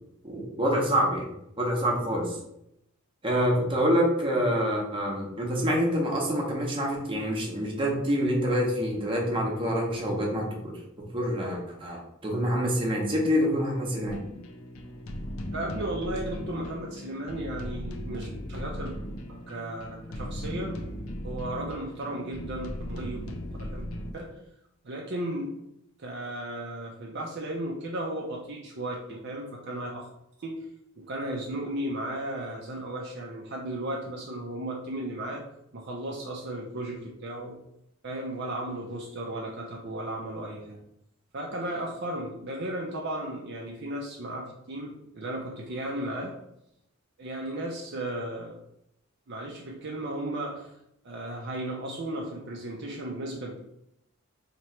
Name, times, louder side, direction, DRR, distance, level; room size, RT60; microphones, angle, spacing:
voice 1, 0.2-1.2 1.6-2.4 3.2-10.5 11.1-14.2, equal, 25° right, -1 dB, 0.9 m, -26 dB
sound 1, 14.1-24.1, left 1 dB, 85° left, 0.5 m, -37 dB
voice 2, 15.5-18.9 19.3-20.8 21.2-23.3 23.6-23.8 24.1-24.4 24.8-25.5 26.0-30.1 30.4-30.7 31.0-35.4 35.7-37.6 38.0-40.8 41.3-46.4 47.2-48.6 49.3-50.7 51.0-53.6, right 1 dB, 50° right, -1 dB, 0.5 m, -35 dB
3.0 x 2.9 x 4.3 m, 0.79 s
head